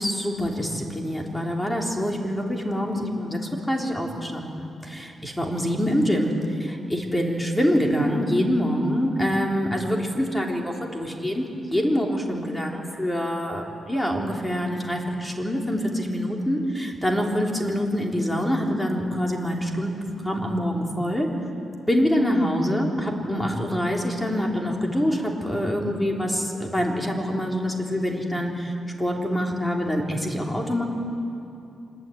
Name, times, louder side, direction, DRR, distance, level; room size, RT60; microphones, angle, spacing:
voice 1, 0.0-3.4 3.7-21.3 21.8-30.8, equal, 10° left, 0 dB, 3.8 m, -25 dB
25.5 x 21.5 x 9.5 m, 2.7 s
cardioid pair, 115°, 0 cm